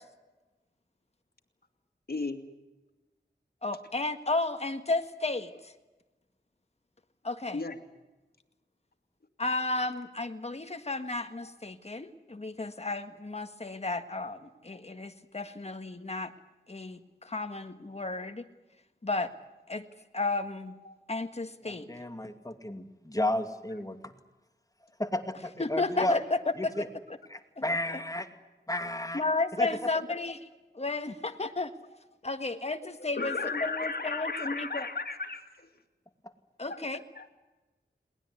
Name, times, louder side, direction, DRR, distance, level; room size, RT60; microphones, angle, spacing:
voice 1, 2.1-2.4 7.5-7.8 11.4-11.5 20.8-21.0 33.1-35.7 36.7-37.3, left 4 dB, 60° left, 6 dB, 2.6 m, -35 dB
voice 2, 3.6-5.5 7.2-7.6 9.4-16.3 16.7-18.4 19.0-19.3 19.7-19.9 20.1-20.7 21.1-21.9 25.6-26.2 26.6-26.7 27.6-28.0 29.1-30.4 30.7-31.7 32.2-34.9 36.6-37.0, left 3 dB, 35° left, 8 dB, 1.7 m, -33 dB
voice 3, 21.6-24.1 25.0-26.2 26.6-26.9 27.3-28.3 28.7-29.2 29.6-29.7, left 1 dB, 20° left, 7 dB, 2.5 m, -32 dB
21.5 x 19.5 x 9.7 m, 1.1 s
wide cardioid pair, 75°, 18 cm